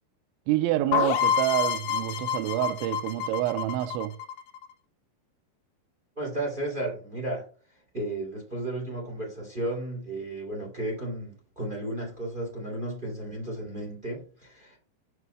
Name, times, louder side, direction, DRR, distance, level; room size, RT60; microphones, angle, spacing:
voice 1, 0.5-4.1, right 14 dB, 85° right, 2.9 m, -27 dB
sound 1, 0.9-4.7, left 8 dB, 90° left, 3.6 m, -28 dB
voice 2, 6.2-7.4 7.9-14.8, right 1 dB, 15° right, 1.7 m, -33 dB
9.5 x 6.0 x 2.2 m
omnidirectional pair, 5.4 m